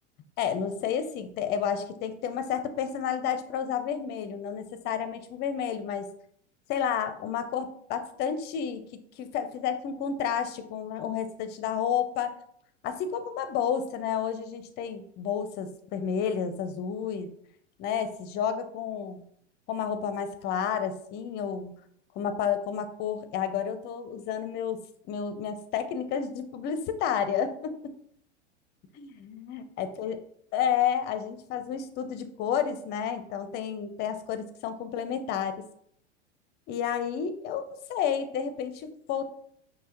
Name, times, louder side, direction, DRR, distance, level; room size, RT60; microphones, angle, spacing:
voice 1, 0.4-6.1 6.7-12.3 12.8-17.3 17.8-19.2 19.7-21.7 22.2-27.7 29.0-30.2 30.5-35.6 36.7-39.3, left 8 dB, 30° left, 10 dB, 0.5 m, -31 dB
5.4 x 2.8 x 2.9 m, 0.67 s
hypercardioid pair, 95°, 36 cm